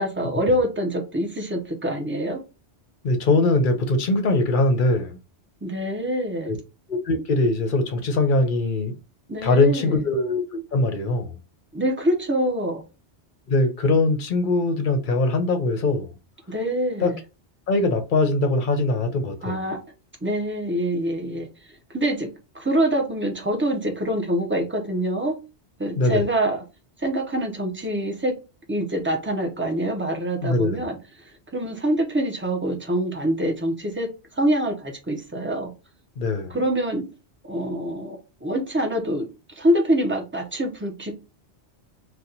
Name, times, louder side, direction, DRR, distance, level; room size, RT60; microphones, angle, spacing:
voice 1, 0.0-2.4 5.6-6.5 9.3-10.0 11.7-12.8 16.5-17.2 19.4-19.8 20.2-22.3 22.5-25.3 25.8-26.6 27.0-28.3 28.7-34.1 34.3-35.7 36.5-37.1 37.5-39.3 39.6-41.1, right 1 dB, 15° right, 0.6 m, -25 dB
voice 2, 3.0-5.2 6.4-6.5 6.9-9.0 9.4-11.4 13.5-16.1 17.0-17.1 17.7-19.6 26.0-26.2 30.4-30.8 36.2-36.6, left 2 dB, 50° left, 0.7 m, -22 dB
2.8 x 2.3 x 3.8 m
omnidirectional pair, 1.2 m